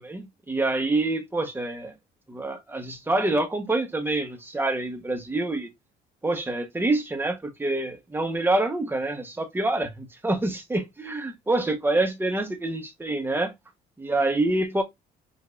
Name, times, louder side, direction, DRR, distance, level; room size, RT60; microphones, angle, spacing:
voice 1, 0.0-1.9 2.3-5.7 6.2-13.5 14.0-14.8, right 2 dB, 15° right, 1.1 m, -26 dB
5.4 x 2.6 x 2.5 m
cardioid pair, 110°, 17 cm